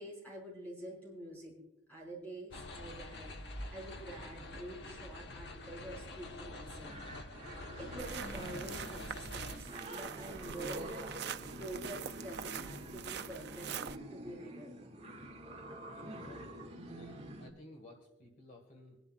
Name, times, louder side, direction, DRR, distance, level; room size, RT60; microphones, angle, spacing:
voice 1, 0.0-1.5 1.9-6.9 7.5-11.1 11.6-13.7 14.1-14.8, right 1 dB, 10° left, -4 dB, 5.6 m, -47 dB
sound 1, 2.5-9.6, left 2 dB, 60° left, 1.1 m, -46 dB
sound 2, 6.8-17.5, right 1 dB, 35° right, 1.8 m, -47 dB
sound 3, 8.0-14.0, right 7 dB, 55° right, 0.5 m, -44 dB
voice 2, 16.0-19.0, left 1 dB, 45° left, 2 dB, 1.7 m, -56 dB
26.0 x 11.5 x 2.4 m, 0.96 s
head